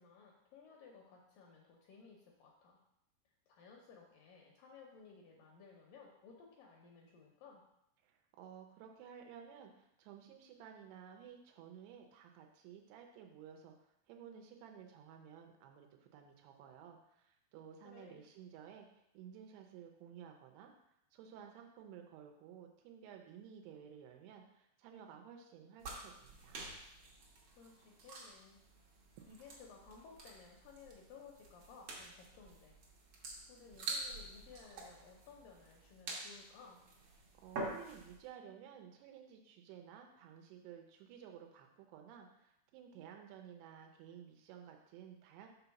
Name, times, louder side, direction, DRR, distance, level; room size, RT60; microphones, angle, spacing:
voice 1, 0.0-2.8 3.5-7.6 17.8-18.2 27.6-28.6 29.3-32.8 33.5-36.8, left 5 dB, 75° left, 0 dB, 2.1 m, -58 dB
voice 2, 8.0-13.7 14.1-20.7 21.1-26.6 37.4-45.5, right 8 dB, 90° right, 3 dB, 2.8 m, -55 dB
sound 1, 25.8-38.2, right 3 dB, 70° right, 1.4 m, -48 dB
6.2 x 4.0 x 5.8 m, 0.81 s
omnidirectional pair, 4.6 m